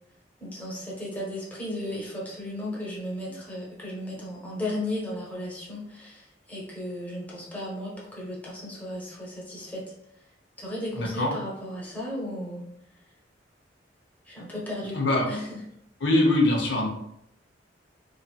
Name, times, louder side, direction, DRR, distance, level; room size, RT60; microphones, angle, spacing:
voice 1, 0.4-9.8 10.6-12.6 14.3-15.0 15.3-15.6, left 1 dB, 10° left, -5 dB, 0.9 m, -35 dB
voice 2, 11.0-11.3 14.9-15.3 16.0-16.9, left 2 dB, 90° left, 0 dB, 0.7 m, -22 dB
3.1 x 2.7 x 2.3 m, 0.78 s
head